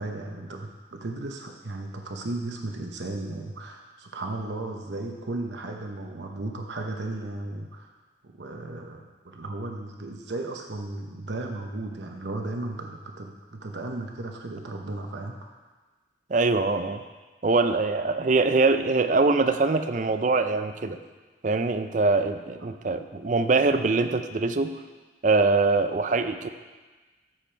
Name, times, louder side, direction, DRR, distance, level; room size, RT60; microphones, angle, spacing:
voice 1, 0.0-7.9 8.2-15.5, right 2 dB, 75° right, 2 dB, 0.9 m, -35 dB
voice 2, 16.3-17.0 17.4-21.0 21.4-24.8 25.2-26.5, right 3 dB, 45° right, 9 dB, 0.5 m, -23 dB
13.5 x 5.1 x 4.5 m, 1.3 s
head